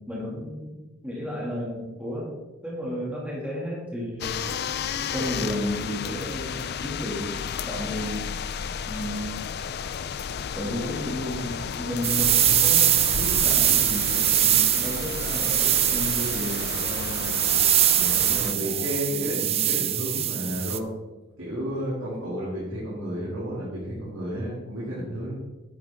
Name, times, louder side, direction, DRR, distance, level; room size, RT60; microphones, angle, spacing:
voice 1, 0.1-2.3 2.6-4.4 5.1-7.3 7.7-8.3 8.9-9.4 10.5-17.5 18.0-18.8 19.1-19.3, equal, 5° right, -5 dB, 2.4 m, -33 dB
sound 1, 4.2-18.5, left 6 dB, 50° left, 0.4 m, -33 dB
sound 2, 12.0-20.8, right 11 dB, 30° right, 0.4 m, -23 dB
voice 2, 17.9-20.9 21.4-25.4, equal, 60° right, -8 dB, 2.9 m, -32 dB
10.0 x 8.3 x 3.7 m, 1.1 s
head